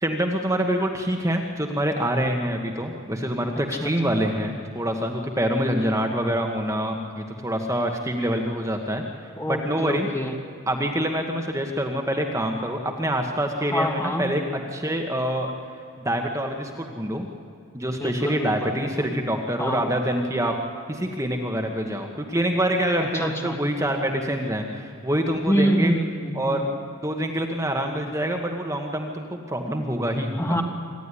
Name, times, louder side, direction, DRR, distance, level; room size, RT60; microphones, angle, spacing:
voice 1, 0.0-9.0 9.5-10.1 10.7-14.4 14.7-15.5 16.0-17.3 17.7-20.5 20.9-25.9 26.3-26.6 27.0-30.4, equal, 15° right, 3 dB, 1.5 m, -26 dB
voice 2, 3.8-4.2 9.4-10.3 13.6-14.3 17.9-19.1 19.6-19.8 23.1-23.6 25.4-26.7 30.4-30.6, equal, 15° left, 3 dB, 1.7 m, -26 dB
25.5 x 14.5 x 9.9 m, 2.3 s
head